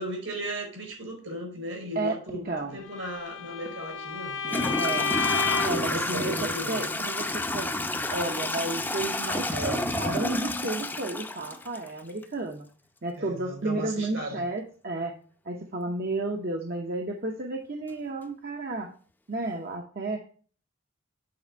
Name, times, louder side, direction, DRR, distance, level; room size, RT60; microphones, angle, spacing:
voice 1, 0.0-4.8 5.7-6.9 9.5-9.9 13.2-14.4, equal, 70° right, 4.7 m, -36 dB
voice 2, 2.4-2.8 4.8-5.1 5.6-6.3 6.7-12.7 13.0-15.1 15.5-18.9 19.3-20.3, right 2 dB, 45° right, 0.8 m, -32 dB
Bowed string instrument, 2.9-5.9, left 5 dB, 70° left, 0.8 m, -30 dB
Toilet flush / Trickle dribble, 3.6-3.7 4.4-12.2, left 2 dB, 10° left, 0.6 m, -30 dB
7.8 x 4.3 x 5.4 m
head